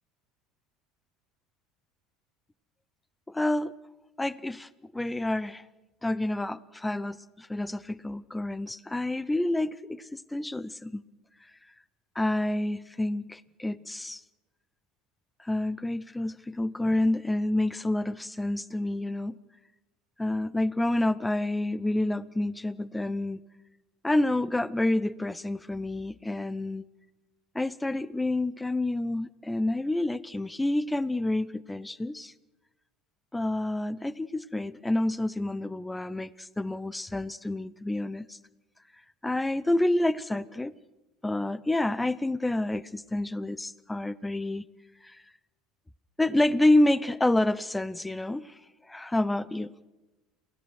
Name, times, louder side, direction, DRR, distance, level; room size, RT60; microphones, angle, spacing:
voice 1, 3.3-3.7 4.2-5.6 6.0-11.0 12.2-14.2 15.4-19.4 20.2-23.4 24.0-26.8 27.5-32.3 33.3-38.4 39.2-40.7 41.2-44.7 46.2-48.5 48.9-49.7, left 1 dB, 10° left, 0.7 m, -28 dB
28.0 x 16.5 x 6.4 m
hypercardioid pair, 70°, 0 cm